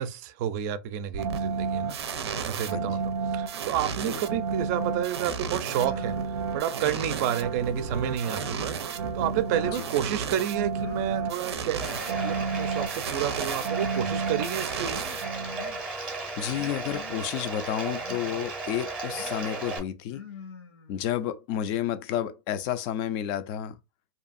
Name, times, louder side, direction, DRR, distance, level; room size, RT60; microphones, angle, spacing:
voice 1, 0.0-2.0 2.4-15.0, right 10 dB, 40° right, 0.4 m, -30 dB
sound 1, 1.1-15.8, right 5 dB, 90° right, 0.5 m, -31 dB
sound 2, 5.6-6.4 6.8-8.8 9.2-10.2 10.7-11.4 11.7-12.4 13.3-14.0 14.9-15.8 16.5-17.3 17.9-18.5 19.0-19.7 20.1-21.2, left 5 dB, 90° left, 1.0 m, -45 dB
Bathtub (filling or washing), 11.8-19.8, right 3 dB, 5° right, 0.7 m, -35 dB
voice 2, 15.9-20.2 20.9-23.8, left 10 dB, 35° left, 0.3 m, -31 dB
2.6 x 2.5 x 2.4 m
supercardioid pair, 145°, 13 cm